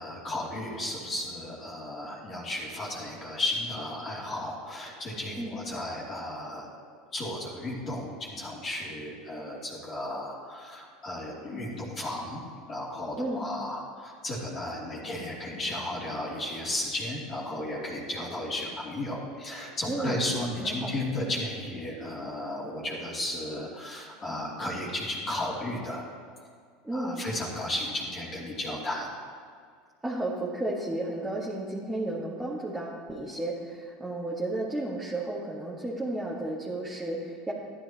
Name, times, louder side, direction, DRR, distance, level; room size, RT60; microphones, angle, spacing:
voice 1, 0.0-6.7 7.1-12.4 12.7-26.0 26.9-29.1, left 1 dB, 35° left, -4 dB, 2.9 m, -34 dB
voice 2, 13.1-13.5 19.8-20.3 20.6-20.9 26.8-27.3 30.0-37.5, right 1 dB, 10° right, -5 dB, 1.7 m, -33 dB
14.0 x 11.0 x 3.0 m, 2.1 s
hypercardioid pair, 90°, 0 cm